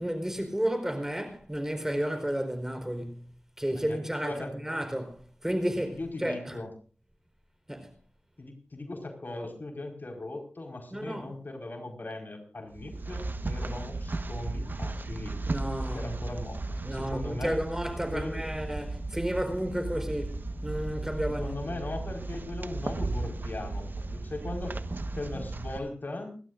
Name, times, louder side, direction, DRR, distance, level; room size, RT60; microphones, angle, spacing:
voice 1, 0.0-3.3 3.6-6.6 7.7-7.9 10.9-11.3 15.5-16.0 16.8-21.8, equal, 10° right, 4.3 m, -32 dB
voice 2, 3.7-4.5 5.9-6.7 8.4-15.4 15.9-17.6 18.1-18.4 21.4-24.8 25.1-26.4, left 2 dB, 55° left, 4.9 m, -39 dB
sound 1, 12.7-25.8, right 2 dB, 60° right, 1.2 m, -35 dB
29.0 x 12.5 x 2.6 m
cardioid pair, 45°, 4 cm